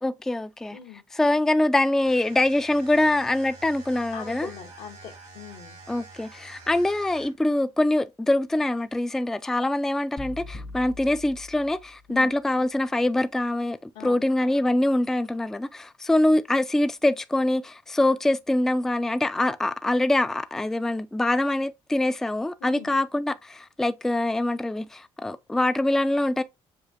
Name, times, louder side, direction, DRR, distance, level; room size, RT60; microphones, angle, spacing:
voice 1, 0.0-0.8 1.1-4.5 5.9-26.4, left 1 dB, 5° left, 0.3 m, -24 dB
voice 2, 0.7-1.0 4.1-5.8 12.1-12.4 13.9-14.3 22.6-22.9, left 8 dB, 75° left, 1.0 m, -42 dB
sound 1, 2.0-7.5, right 3 dB, 85° right, 3.0 m, -47 dB
sound 2, 10.2-12.3, left 2 dB, 50° left, 1.0 m, -41 dB
6.7 x 2.4 x 2.6 m
supercardioid pair, 65°, 13 cm